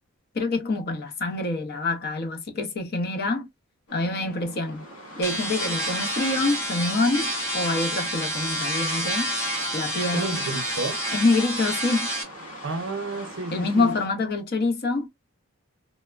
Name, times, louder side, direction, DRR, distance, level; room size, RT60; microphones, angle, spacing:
voice 1, 0.3-3.5 3.9-4.8 5.2-9.3 9.7-10.5 11.1-12.1 13.5-15.1, left 2 dB, 45° left, 0.6 m, -26 dB
sound 1, 3.9-14.1, equal, 90° left, 1.3 m, -43 dB
sound 2, 5.2-12.2, equal, 10° left, 0.7 m, -29 dB
voice 2, 10.1-11.0 12.6-14.0, right 3 dB, 60° right, 0.6 m, -31 dB
3.2 x 2.0 x 2.3 m
head